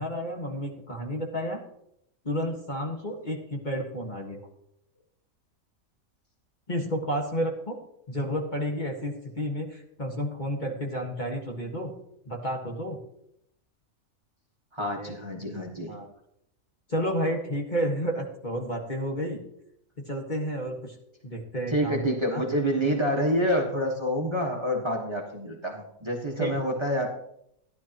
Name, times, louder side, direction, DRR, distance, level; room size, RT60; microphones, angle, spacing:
voice 1, 0.0-1.6 2.2-4.4 6.7-7.8 8.1-11.9 12.2-13.0 15.0-15.4 15.9-16.1 16.9-19.4 20.0-20.9 21.2-22.4 26.4-26.6, equal, 35° left, 0 dB, 1.7 m, -31 dB
voice 2, 14.7-15.9 21.7-27.1, equal, 20° right, -1 dB, 1.5 m, -27 dB
15.0 x 11.0 x 3.0 m, 0.75 s
omnidirectional pair, 1.5 m